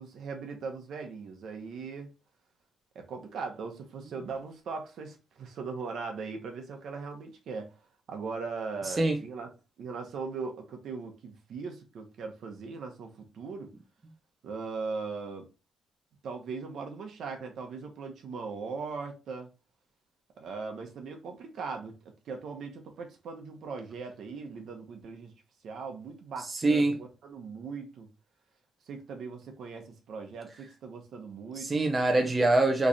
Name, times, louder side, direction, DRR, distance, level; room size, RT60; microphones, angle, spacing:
voice 1, 0.0-2.1 2.9-7.7 8.1-9.5 9.8-13.7 14.4-15.5 16.2-19.5 20.4-21.9 22.3-25.3 25.6-28.1 28.9-31.8, right 4 dB, 70° right, 0.9 m, -39 dB
voice 2, 26.5-27.0 31.6-32.9, right 2 dB, 25° right, 0.6 m, -24 dB
3.1 x 2.4 x 4.0 m
cardioid pair, 90°, 0 cm